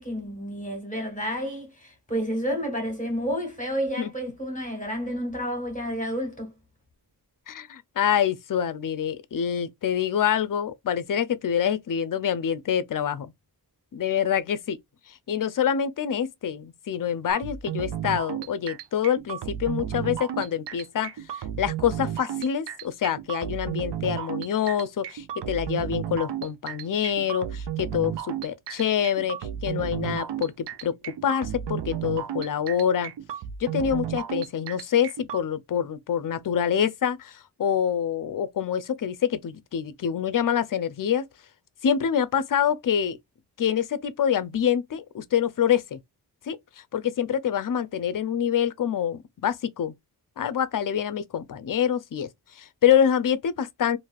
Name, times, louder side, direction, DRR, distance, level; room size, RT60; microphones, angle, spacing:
voice 1, 0.0-6.5, equal, 20° left, 1.5 m, -30 dB
voice 2, 7.5-13.3 13.9-14.8 15.3-33.1 33.6-41.3 41.8-43.2 43.6-46.0 46.5-46.6 46.9-49.9 50.4-52.3 52.6-54.0, left 8 dB, 55° left, 0.5 m, -26 dB
sound 1, 17.3-35.4, right 10 dB, 80° right, 0.6 m, -33 dB
3.1 x 2.6 x 2.3 m
wide cardioid pair, 105°, 40 cm